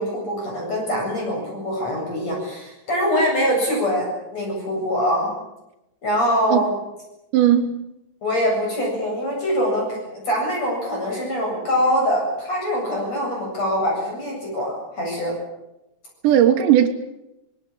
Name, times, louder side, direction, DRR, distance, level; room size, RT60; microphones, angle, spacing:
voice 1, 0.0-5.3 6.0-6.7 8.2-15.3, equal, 35° left, -1 dB, 9.1 m, -23 dB
voice 2, 7.3-7.7 16.2-16.9, right 10 dB, 80° right, 3 dB, 3.6 m, -16 dB
25.5 x 21.0 x 8.8 m, 0.91 s
omnidirectional pair, 5.0 m